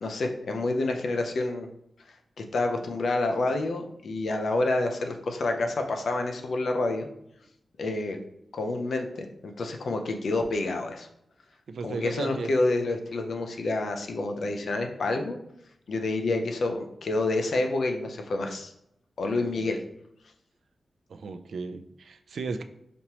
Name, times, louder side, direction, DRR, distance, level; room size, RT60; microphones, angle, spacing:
voice 1, 0.0-1.7 2.1-7.1 7.8-8.2 8.5-11.1 11.8-15.4 15.9-18.7 19.2-19.8, left 2 dB, 65° left, 4 dB, 0.5 m, -28 dB
voice 2, 11.7-12.5 19.6-19.7 21.1-22.6, right 4 dB, 75° right, 8 dB, 0.3 m, -35 dB
5.1 x 2.9 x 3.0 m, 0.78 s
wide cardioid pair, 155°, 0 cm